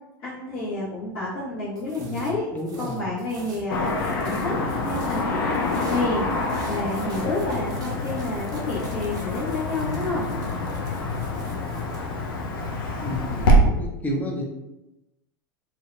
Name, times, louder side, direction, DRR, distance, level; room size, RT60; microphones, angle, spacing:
voice 1, 0.2-2.5 2.8-4.5 4.8-6.3 6.7-10.3, left 2 dB, 45° left, -11 dB, 1.0 m, -30 dB
sound 1, 1.8-5.3 5.5-12.0, right 2 dB, 30° right, 0.6 m, -44 dB
voice 2, 2.0-3.0 13.0-14.4, left 1 dB, 15° left, -1 dB, 0.6 m, -31 dB
Car passing by / Traffic noise roadway noise, 3.7-13.6, left 1 dB, 75° left, 0.5 m, -26 dB
2.6 x 2.1 x 2.4 m, 0.95 s
hypercardioid pair, 100°, 12 cm